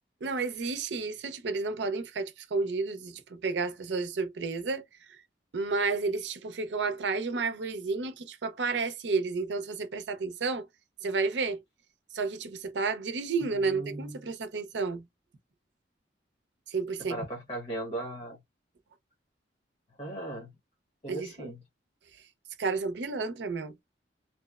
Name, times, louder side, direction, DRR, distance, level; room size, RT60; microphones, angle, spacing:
voice 1, 0.2-4.8 5.1-5.2 5.5-10.7 11.0-11.6 12.1-15.1 16.7-17.1 21.1-21.5 22.6-23.7, right 4 dB, 80° right, 0.6 m, -31 dB
voice 2, 13.4-14.2 17.1-18.4 20.0-20.5 21.0-21.6, right 1 dB, 35° left, 1.0 m, -38 dB
2.8 x 2.0 x 2.3 m
head